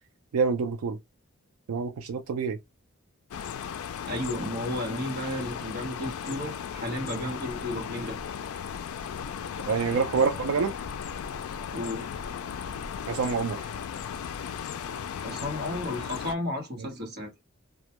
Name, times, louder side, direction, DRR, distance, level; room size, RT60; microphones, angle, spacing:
voice 1, 0.3-1.0 1.7-2.6 9.7-10.7 13.1-13.6 16.8-16.9, right 5 dB, 85° right, 0.4 m, -26 dB
sound 1, 3.3-16.4, left 7 dB, 80° left, 0.3 m, -36 dB
voice 2, 4.1-8.2 9.9-10.2 11.7-12.1 15.2-17.3, left 1 dB, 50° right, 0.9 m, -33 dB
2.1 x 2.1 x 2.8 m
head